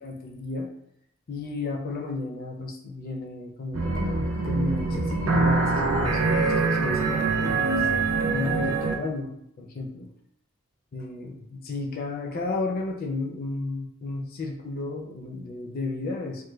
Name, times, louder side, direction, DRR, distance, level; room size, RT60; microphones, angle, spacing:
voice 1, 0.0-0.7 1.3-7.9 8.3-10.1 10.9-16.4, left 3 dB, 45° left, 3 dB, 0.4 m, -33 dB
sound 1, 3.7-8.9, right 3 dB, 80° right, 0.6 m, -24 dB
3.1 x 2.2 x 3.3 m, 0.75 s
head